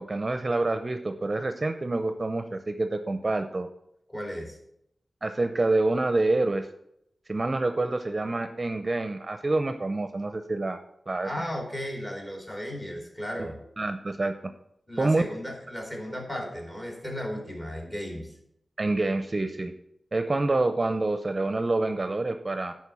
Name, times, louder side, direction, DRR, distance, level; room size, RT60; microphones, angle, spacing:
voice 1, 0.0-3.7 5.2-6.7 7.3-10.8 11.1-11.3 13.4-14.3 15.0-15.2 18.8-19.7 20.1-22.7, right 2 dB, 35° right, 8 dB, 0.6 m, -27 dB
voice 2, 4.1-4.6 11.2-13.6 14.9-18.3, equal, 20° left, 1 dB, 2.9 m, -35 dB
10.5 x 4.5 x 7.0 m, 0.75 s
wide cardioid pair, 90°, 0 cm